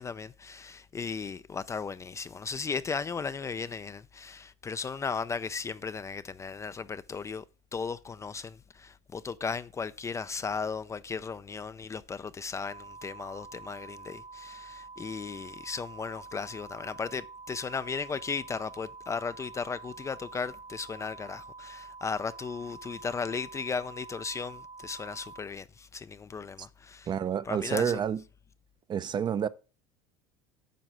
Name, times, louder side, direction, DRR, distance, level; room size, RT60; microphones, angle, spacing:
voice 1, 0.0-7.4 7.7-27.1 27.5-28.0, left 5 dB, 20° left, 0.4 m, -36 dB
sound 1, 12.6-25.4, right 4 dB, 85° right, 3.1 m, -47 dB
voice 2, 27.1-28.2 28.9-29.5, right 8 dB, 30° right, 0.6 m, -29 dB
9.1 x 5.5 x 6.1 m
supercardioid pair, 105°, 14 cm